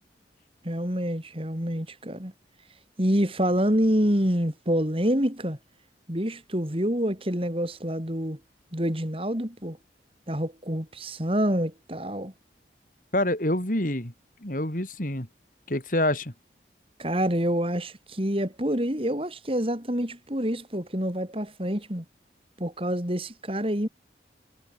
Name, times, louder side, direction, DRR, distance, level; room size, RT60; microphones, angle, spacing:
voice 1, 0.6-2.3 3.0-5.6 6.1-8.4 8.7-9.8 10.3-12.3 17.0-22.0 22.6-23.9, equal, 30° right, 4.0 m, -27 dB
voice 2, 13.1-14.1 14.4-15.3 15.7-16.3, left 1 dB, 50° left, 4.4 m, -26 dB
head